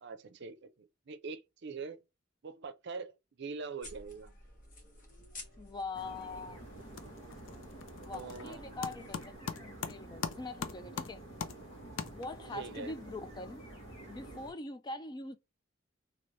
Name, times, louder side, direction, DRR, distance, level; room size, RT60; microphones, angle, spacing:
voice 1, 0.0-2.0 2.4-4.3 8.0-8.6 12.5-12.9, right 4 dB, 60° right, 0.5 m, -43 dB
sound 1, 3.8-9.4, left 2 dB, 45° left, 1.2 m, -54 dB
voice 2, 5.6-6.6 8.0-11.2 12.1-13.7 14.0-15.4, left 2 dB, 20° left, 0.3 m, -43 dB
sound 2, 5.9-14.5, right 1 dB, 70° left, 1.6 m, -49 dB
sound 3, 6.1-6.5 6.7-12.6, left 6 dB, 85° left, 0.5 m, -42 dB
3.2 x 2.9 x 2.6 m
head